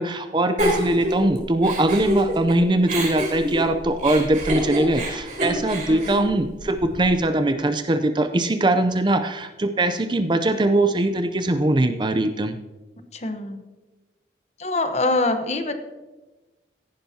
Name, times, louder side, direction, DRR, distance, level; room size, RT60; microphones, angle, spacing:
voice 1, 0.0-12.5, right 1 dB, 25° right, 9 dB, 0.5 m, -21 dB
Giggle, 0.6-2.5 2.9-7.1, equal, 45° right, 3.8 m, -27 dB
voice 2, 5.9-6.2 13.1-13.6 14.6-15.7, left 2 dB, 35° left, 8 dB, 0.9 m, -24 dB
16.0 x 10.0 x 2.8 m, 1.2 s
head